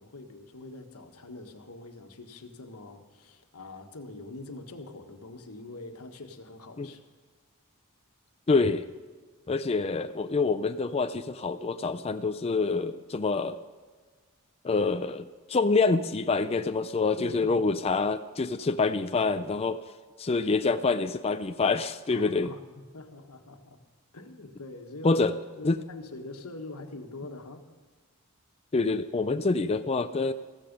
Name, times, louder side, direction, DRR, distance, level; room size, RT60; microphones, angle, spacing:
voice 1, 0.0-7.0 17.2-17.7 22.1-23.8 24.1-25.2 25.6-27.6, left 2 dB, 90° left, 6 dB, 1.5 m, -44 dB
voice 2, 8.5-8.9 9.5-13.6 14.6-19.8 20.2-22.5 25.0-25.3 25.6-25.8 28.7-30.3, left 3 dB, 25° left, 9 dB, 0.4 m, -26 dB
15.0 x 14.5 x 5.3 m, 1.4 s
head